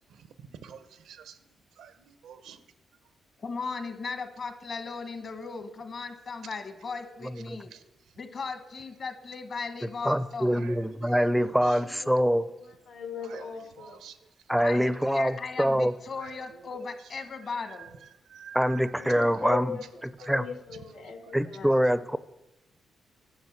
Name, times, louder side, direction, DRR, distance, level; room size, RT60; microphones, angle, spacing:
voice 1, 0.1-1.4 1.8-2.6 7.7-7.8 10.5-11.7 13.2-13.4 13.8-14.2 16.2-16.4 16.7-16.9 17.7-17.9 18.3-18.8 20.2-20.3 21.2-21.3, right 8 dB, 90° right, 13 dB, 0.7 m, -48 dB
voice 2, 3.4-7.7 8.2-10.6 14.6-17.9, left 4 dB, 55° left, 9 dB, 1.2 m, -37 dB
voice 3, 9.8-12.5 14.5-15.9 18.5-19.8 20.3-20.4 21.3-22.2, equal, 5° right, 15 dB, 0.4 m, -25 dB
voice 4, 11.4-14.0 19.0-19.9 20.2-21.7, left 6 dB, 85° left, 6 dB, 1.6 m, -39 dB
10.5 x 6.1 x 7.1 m, 0.99 s
cardioid pair, 85°, 0 cm